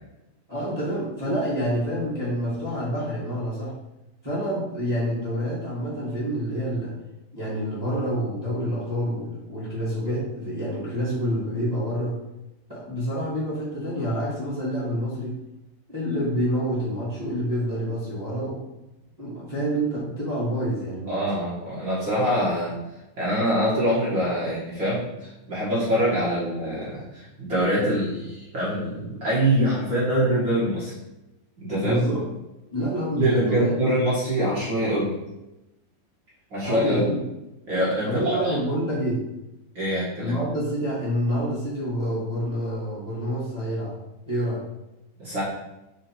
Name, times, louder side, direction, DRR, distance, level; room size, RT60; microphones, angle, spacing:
voice 1, 0.5-3.7 4.2-6.9 7.3-12.2 12.7-15.3 15.9-18.6 19.2-21.4 31.8-32.2 32.7-34.0 36.6-37.2 38.1-39.2 40.2-43.9 44.2-44.6, equal, 20° right, -9 dB, 1.1 m, -27 dB
voice 2, 21.1-30.9 31.6-32.0 33.2-35.1 36.5-37.1 37.7-38.5 39.7-40.3 45.2-45.4, equal, 45° right, -9 dB, 1.6 m, -24 dB
6.0 x 4.5 x 4.5 m, 0.96 s
omnidirectional pair, 4.8 m